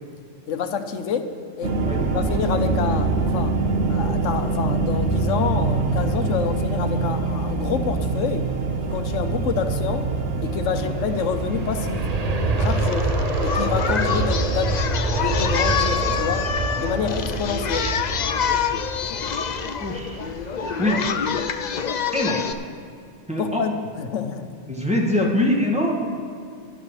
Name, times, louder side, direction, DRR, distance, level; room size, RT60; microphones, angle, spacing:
voice 1, 0.5-1.3 1.6-1.7 2.1-3.6 3.9-8.5 8.9-10.1 10.4-12.1 12.6-13.1 13.4-16.5 16.8-17.9 23.4-24.5, left 7 dB, 80° left, 8 dB, 1.1 m, -27 dB
sound 1, 1.6-12.7, right 3 dB, 80° right, 1.4 m, -24 dB
Aircraft, 10.7-21.6 22.0-22.1, right 2 dB, 40° right, 0.7 m, -26 dB
Singing, 12.6-22.5, left 7 dB, 55° left, 0.5 m, -27 dB
voice 2, 19.8-20.2 20.8-21.0 22.1-22.4 23.3-23.6 24.7-26.0, left 1 dB, 5° right, -2 dB, 1.7 m, -23 dB
17.5 x 11.5 x 3.2 m, 2.4 s
omnidirectional pair, 1.3 m